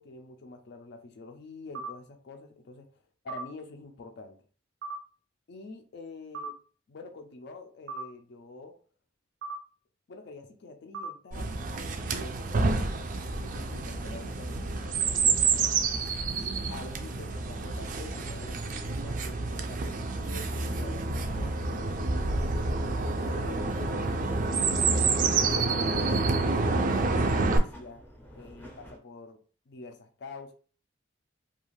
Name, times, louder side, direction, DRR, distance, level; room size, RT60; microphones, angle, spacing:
voice 1, 0.0-2.9 3.2-4.4 5.5-6.5 6.9-8.8 10.1-13.1 13.3-15.7 16.7-22.3 22.7-24.1 24.5-28.0 28.3-29.4 29.7-30.5, left 3 dB, 60° left, 5 dB, 0.4 m, -46 dB
sound 1, 1.7-1.9 3.3-3.5 4.8-5.0 6.3-6.5 7.9-8.1 9.4-9.6 10.9-11.1, right 3 dB, 85° right, 0.6 m, -37 dB
Chirp tweet, 11.3-27.6, right 4 dB, 45° right, 0.3 m, -28 dB
sound 2, 12.8-29.0, left 1 dB, 10° left, 0.5 m, -50 dB
2.4 x 2.3 x 3.0 m, 0.40 s
head